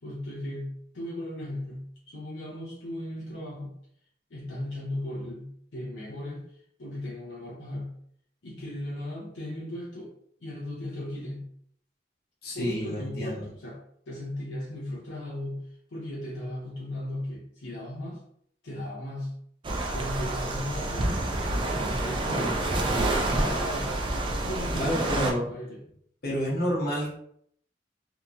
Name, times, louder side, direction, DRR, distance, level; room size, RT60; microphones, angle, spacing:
voice 1, 0.0-3.7 4.3-6.4 6.8-7.9 8.4-10.2 10.4-11.5 12.5-15.6 15.9-18.2 18.6-19.3 19.9-21.2 21.6-22.7 22.9-23.9 24.4-25.8, left 1 dB, 85° left, -5 dB, 0.6 m, -37 dB
voice 2, 12.4-13.5 24.7-25.5 26.2-27.1, equal, 60° left, -4 dB, 0.9 m, -29 dB
sound 1, 19.6-25.3, right 2 dB, 30° right, 0.4 m, -28 dB
2.8 x 2.7 x 2.3 m, 0.66 s
head